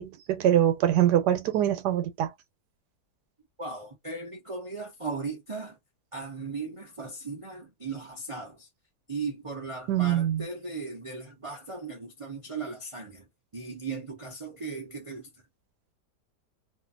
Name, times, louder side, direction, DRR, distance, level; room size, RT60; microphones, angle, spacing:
voice 1, 0.0-2.3 9.9-10.4, right 11 dB, 90° right, 1.2 m, -24 dB
voice 2, 3.6-5.8 6.1-8.7 9.1-13.2 13.5-15.3, right 4 dB, 35° right, 0.5 m, -37 dB
2.8 x 2.5 x 2.5 m
omnidirectional pair, 1.8 m